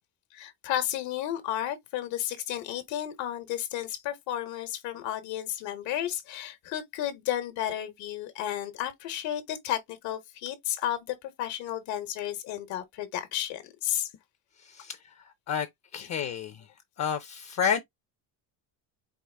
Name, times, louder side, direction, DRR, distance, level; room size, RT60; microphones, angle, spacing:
voice 1, 0.3-14.1 16.0-16.1, left 12 dB, 80° left, 1.2 m, -33 dB
voice 2, 14.6-15.7 15.9-16.7 17.0-17.8, left 7 dB, 40° left, 0.5 m, -30 dB
4.9 x 2.4 x 3.3 m
cardioid pair, 150°, 43 cm